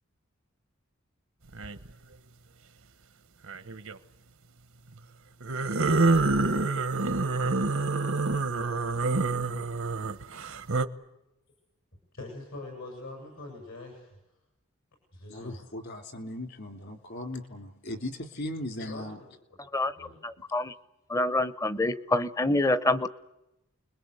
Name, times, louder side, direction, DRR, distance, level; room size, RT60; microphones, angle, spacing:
sound 1, 1.5-1.9 3.4-4.0 5.4-10.8, right 3 dB, 80° right, 1.3 m, -27 dB
voice 1, 12.1-14.2 15.1-15.6 18.9-20.2, left 2 dB, 75° left, 2 dB, 7.3 m, -44 dB
voice 2, 15.3-19.2, left 1 dB, 55° left, 6 dB, 3.0 m, -38 dB
voice 3, 20.2-20.7 21.1-23.1, left 2 dB, 15° left, 14 dB, 0.9 m, -26 dB
29.5 x 21.5 x 8.2 m, 0.91 s
head